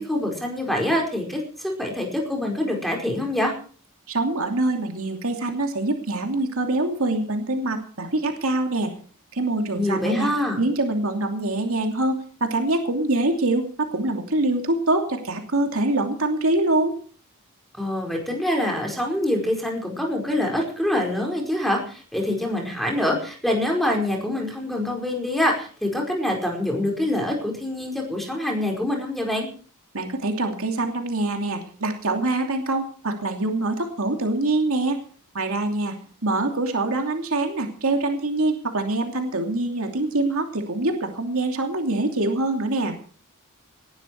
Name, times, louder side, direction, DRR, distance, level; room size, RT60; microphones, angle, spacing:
voice 1, 0.0-3.5 9.8-10.6 17.8-29.5, left 1 dB, ahead, 1 dB, 4.8 m, -25 dB
voice 2, 4.1-8.9 9.3-10.3 10.6-16.9 29.9-35.0 35.3-35.9 36.2-43.0, right 2 dB, 65° right, 3 dB, 2.8 m, -24 dB
19.5 x 12.5 x 4.6 m, 0.43 s
head